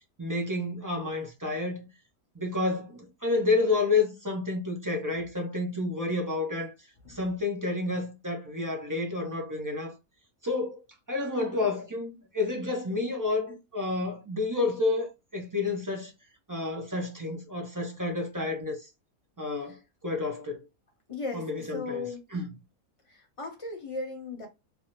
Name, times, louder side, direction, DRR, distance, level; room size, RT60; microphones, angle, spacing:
voice 1, 0.2-1.9 2.4-6.7 7.1-9.9 10.4-10.8 11.1-16.1 16.5-18.8 19.4-19.8 20.0-20.6 21.3-22.6, left 3 dB, 25° right, 0.4 m, -30 dB
voice 2, 21.1-22.2 23.1-24.5, left 3 dB, 30° left, 0.8 m, -37 dB
3.4 x 2.0 x 2.9 m
omnidirectional pair, 1.5 m